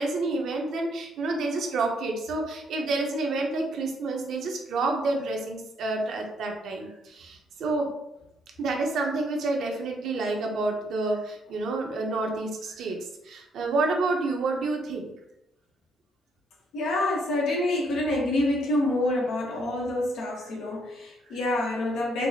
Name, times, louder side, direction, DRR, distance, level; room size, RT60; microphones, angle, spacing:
voice 1, 0.0-7.9 8.6-15.1, right 3 dB, 75° right, 1 dB, 0.7 m, -29 dB
voice 2, 16.7-22.3, left 1 dB, 85° left, -1 dB, 1.0 m, -27 dB
4.5 x 2.1 x 2.8 m, 0.86 s
cardioid pair, 120°, 0 cm